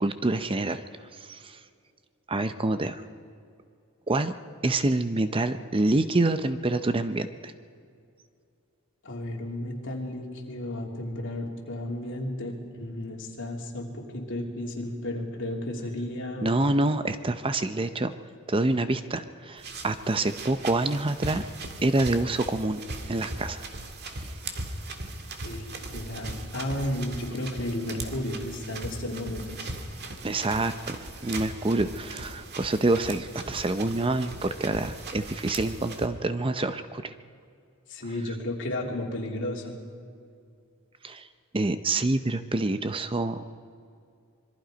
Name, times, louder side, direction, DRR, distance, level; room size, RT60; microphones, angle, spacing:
voice 1, 0.0-0.8 1.2-1.6 2.3-3.0 4.1-4.3 4.6-7.5 16.4-18.1 18.5-21.4 21.8-22.8 23.1-23.6 30.2-37.1 41.0-41.3 41.5-43.4, right 2 dB, 25° right, 11 dB, 0.6 m, -27 dB
voice 2, 9.0-16.5 25.4-29.7 37.9-39.7, left 1 dB, 60° left, 0 dB, 3.3 m, -33 dB
sound 1, 19.6-36.1, right 2 dB, 50° right, 2.0 m, -39 dB
26.0 x 22.0 x 5.2 m, 2.4 s
head